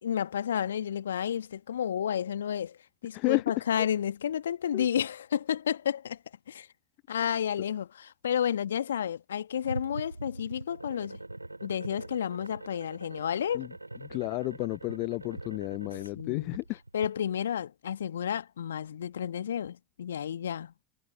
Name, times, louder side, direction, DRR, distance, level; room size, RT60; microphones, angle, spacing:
voice 1, 0.0-2.8 3.0-6.2 6.5-6.7 7.1-11.2 11.6-13.7 16.1-16.6 16.9-20.7, left 9 dB, 70° left, 1.6 m, -31 dB
voice 2, 3.1-3.4 4.7-4.9 13.5-13.7 14.1-16.8, left 26 dB, 50° left, 0.3 m, -31 dB
sound 1, 9.6-17.1, right 2 dB, 90° right, 5.3 m, -42 dB
figure-of-eight pair, 80°, 0 cm